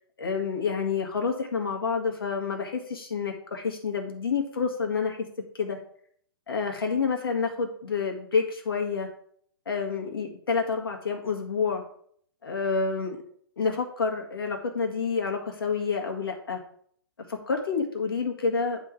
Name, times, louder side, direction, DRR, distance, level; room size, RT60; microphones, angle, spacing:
voice 1, 0.2-5.2 5.6-5.8 6.5-9.1 9.7-11.8 12.4-13.2 13.6-16.6 17.3-18.8, left 5 dB, 70° left, 2 dB, 2.0 m, -28 dB
10.5 x 3.7 x 4.7 m, 0.63 s
figure-of-eight pair, 120°, 13 cm